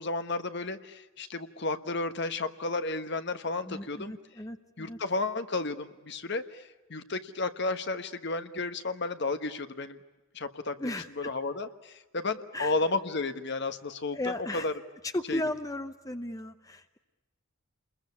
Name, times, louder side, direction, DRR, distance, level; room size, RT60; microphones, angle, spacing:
voice 1, 0.0-4.2 4.8-10.0 10.3-14.7 15.3-15.4, left 3 dB, 55° left, 9 dB, 1.3 m, -33 dB
voice 2, 3.7-5.0 10.8-11.3 12.5-12.7 14.1-14.7 15.0-17.0, left 1 dB, 15° left, 9 dB, 0.8 m, -35 dB
29.0 x 22.0 x 8.4 m, 1.1 s
head